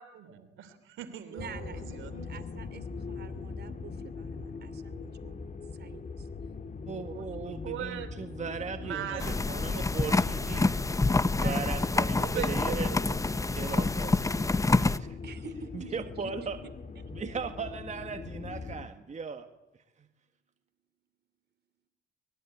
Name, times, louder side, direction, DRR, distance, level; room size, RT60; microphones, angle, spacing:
voice 1, 0.0-2.4 7.1-7.3 7.6-8.1 8.8-10.5 12.2-13.5, right 9 dB, 80° right, 10 dB, 3.2 m, -41 dB
voice 2, 1.3-6.3 11.4-11.9 12.2-13.1 15.2-16.5, right 7 dB, 55° right, 10 dB, 3.0 m, -47 dB
sound 1, 1.4-18.9, left 4 dB, 40° left, 1.9 m, -42 dB
voice 3, 6.9-10.7 11.3-12.9 13.5-14.3 15.0-15.2 15.7-16.6 17.1-19.5, right 5 dB, 35° right, 7 dB, 1.7 m, -38 dB
sound 2, 9.2-15.0, left 3 dB, 15° left, 0.9 m, -27 dB
24.5 x 20.5 x 9.7 m, 0.94 s
cardioid pair, 90°, 20 cm